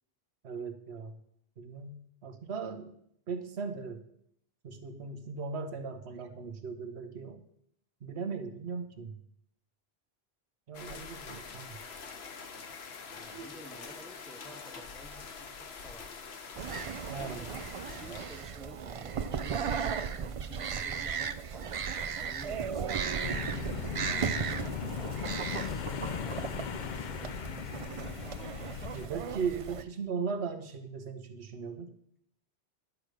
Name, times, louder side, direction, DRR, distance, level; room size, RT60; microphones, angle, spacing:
voice 1, 0.4-1.2 1.6-2.9 3.3-4.0 4.6-7.4 8.0-9.2 10.7-11.8 13.1-13.5 17.1-17.5 23.9-24.5 28.9-31.9, right 5 dB, 90° right, 8 dB, 1.2 m, -38 dB
sound 1, 10.7-18.5, left 5 dB, 75° left, 1.1 m, -45 dB
voice 2, 13.2-16.2 17.0-17.6 18.0-19.7 20.1-23.9 24.7-29.5, equal, ahead, 5 dB, 0.8 m, -52 dB
sound 2, 16.6-29.8, right 6 dB, 50° right, 0.4 m, -36 dB
sound 3, 23.2-29.1, left 7 dB, 55° left, 0.6 m, -38 dB
11.0 x 4.9 x 6.4 m, 0.70 s
omnidirectional pair, 1.1 m